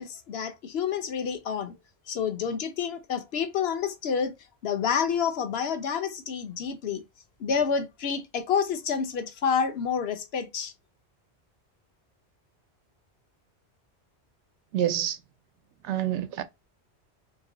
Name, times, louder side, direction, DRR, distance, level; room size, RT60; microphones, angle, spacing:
voice 1, 0.0-1.7 2.1-4.3 4.6-7.0 7.4-10.7, left 6 dB, 65° left, 0.9 m, -28 dB
voice 2, 14.7-15.2 15.9-16.4, right 11 dB, 90° right, 0.9 m, -27 dB
3.0 x 2.9 x 3.8 m
omnidirectional pair, 1.1 m